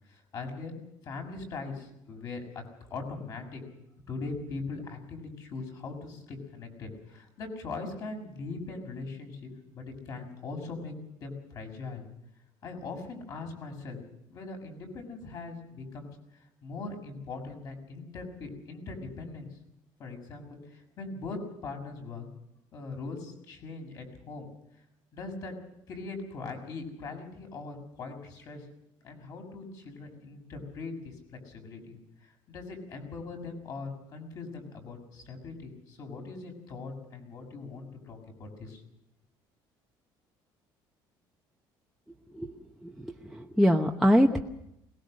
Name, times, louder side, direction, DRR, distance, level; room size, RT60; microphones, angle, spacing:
voice 1, 0.1-0.7 1.0-2.6 2.9-3.6 4.1-12.0 12.6-14.0 14.3-16.1 16.6-19.6 20.0-22.3 22.7-24.5 25.1-25.5 25.9-28.6 29.0-32.0 32.2-38.8, left 3 dB, 45° left, 4 dB, 6.2 m, -40 dB
voice 2, 42.8-44.4, equal, ahead, 0 dB, 1.0 m, -24 dB
22.0 x 20.5 x 6.5 m, 0.80 s
cardioid pair, 155°, 9 cm